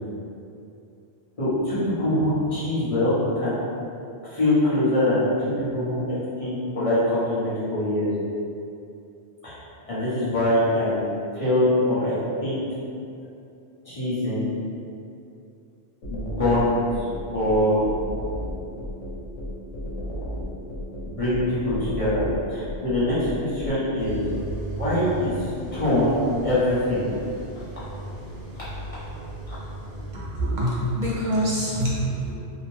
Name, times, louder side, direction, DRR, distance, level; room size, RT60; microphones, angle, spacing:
voice 1, 1.4-3.6 4.2-8.2 9.4-9.6 9.9-11.0 11.3-12.6 13.8-14.5 16.1-17.0 17.3-17.8 21.0-22.2 22.5-24.3 24.8-27.1 27.5-27.6, left 1 dB, 35° left, -12 dB, 0.7 m, -23 dB
sound 1, 16.0-23.7, equal, 80° left, 1.1 m, -33 dB
sound 2, 24.0-30.1, right 1 dB, 35° right, 0.8 m, -36 dB
voice 2, 30.1-32.3, equal, 60° right, -7 dB, 0.5 m, -25 dB
2.7 x 2.0 x 3.0 m, 2.6 s
omnidirectional pair, 1.3 m